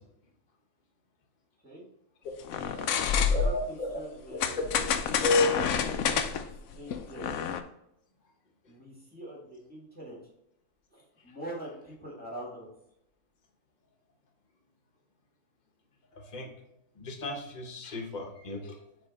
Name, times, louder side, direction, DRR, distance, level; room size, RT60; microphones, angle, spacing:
sound 1, 2.4-3.7 4.4-7.6, left 7 dB, 65° left, 0.8 m, -28 dB
voice 1, 2.7-5.0 5.5-6.2 6.7-7.3 8.7-10.2 10.9-12.7, right 1 dB, 5° left, -4 dB, 1.6 m, -43 dB
voice 2, 3.3-3.9 4.3-4.4 5.2-5.5 16.1-16.5 17.0-18.8, left 3 dB, 35° left, 2 dB, 1.0 m, -31 dB
7.1 x 3.6 x 4.0 m, 0.79 s
omnidirectional pair, 1.6 m